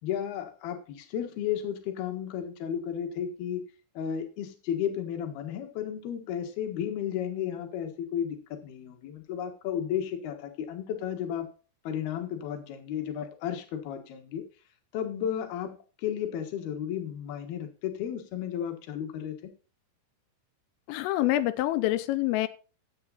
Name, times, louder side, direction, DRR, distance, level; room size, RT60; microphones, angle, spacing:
voice 1, 0.0-3.6 3.9-11.5 11.8-14.4 14.9-19.5, left 9 dB, 60° left, 6 dB, 3.0 m, -33 dB
voice 2, 20.9-22.5, left 15 dB, 90° left, 12 dB, 3.3 m, -26 dB
13.5 x 8.0 x 4.2 m, 0.36 s
omnidirectional pair, 5.6 m